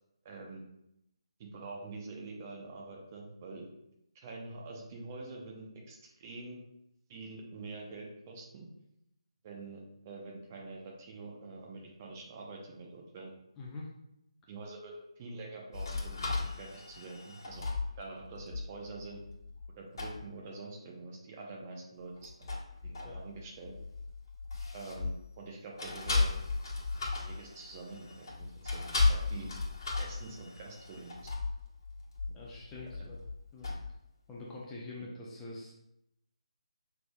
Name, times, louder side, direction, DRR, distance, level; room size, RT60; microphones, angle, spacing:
voice 1, 0.2-0.6 1.4-3.7 4.1-6.6 7.1-8.7 9.4-13.3 14.5-17.6 18.0-19.2 19.8-22.5 23.0-23.7 24.7-26.3 27.2-29.5 30.0-31.3 32.8-33.1, right 3 dB, 25° right, -1 dB, 0.8 m, -46 dB
voice 2, 13.6-13.9 22.9-23.2 32.3-33.2 33.5-33.7 34.3-35.7, left 2 dB, 10° left, -5 dB, 0.6 m, -45 dB
sound 1, 15.7-19.7 20.0-20.2 22.2-25.4 25.8-34.0, left 3 dB, 45° left, 1.3 m, -36 dB
5.9 x 3.4 x 2.3 m, 0.81 s
figure-of-eight pair, 150°, 3 cm